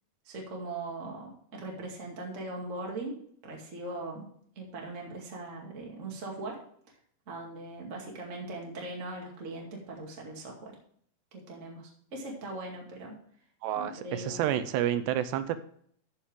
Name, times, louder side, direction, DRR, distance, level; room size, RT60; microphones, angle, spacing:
voice 1, 0.2-3.1 3.4-4.3 4.5-6.6 7.3-10.7 11.3-13.1 13.7-14.4, right 2 dB, 30° right, -1 dB, 1.3 m, -40 dB
voice 2, 13.6-15.6, right 11 dB, 85° right, 12 dB, 2.7 m, -29 dB
13.0 x 6.3 x 3.5 m, 0.63 s
omnidirectional pair, 5.0 m